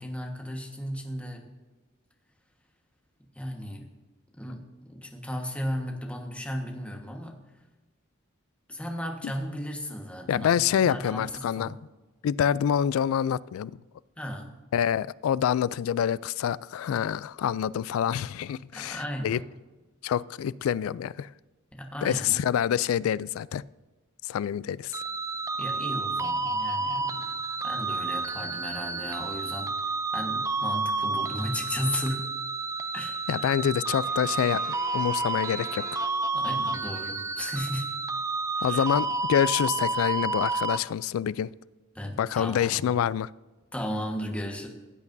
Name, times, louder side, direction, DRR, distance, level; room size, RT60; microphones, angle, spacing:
voice 1, 0.0-1.5 3.3-3.9 4.4-7.4 8.7-11.8 14.2-14.5 18.7-19.5 21.7-22.4 25.6-27.4 27.6-29.7 30.1-32.3 32.9-33.4 36.3-38.0 38.5-38.8 41.9-42.9 43.7-44.7, equal, 5° left, 1.4 m, -35 dB
voice 2, 10.3-11.8 12.2-13.8 14.7-19.4 20.0-21.3 22.0-23.6 24.2-24.9 33.3-36.1 38.6-41.5 42.2-43.3, left 9 dB, 80° left, 0.3 m, -26 dB
sound 1, 24.9-40.8, right 3 dB, 15° right, 0.3 m, -30 dB
Brass instrument, 34.0-36.6, right 3 dB, 40° right, 1.8 m, -45 dB
16.0 x 8.4 x 2.6 m
head